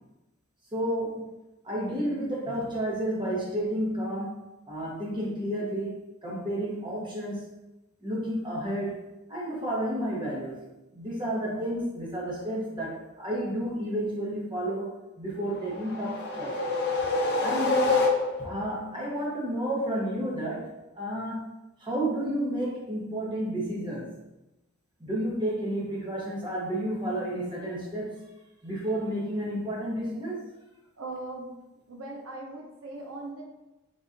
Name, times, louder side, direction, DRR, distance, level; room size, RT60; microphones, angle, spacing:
voice 1, 0.7-1.3 1.6-7.5 8.0-10.6 10.9-14.9 15.2-16.7 17.4-18.1 18.4-21.5 21.8-24.2 25.0-28.3 28.6-30.5, right 1 dB, 20° right, -4 dB, 1.1 m, -31 dB
sound 1, 15.5-18.6, left 3 dB, 50° left, 0.6 m, -27 dB
voice 2, 31.0-31.5 31.9-33.4, right 2 dB, 80° right, 0 dB, 0.7 m, -39 dB
4.0 x 3.9 x 2.6 m, 0.99 s
head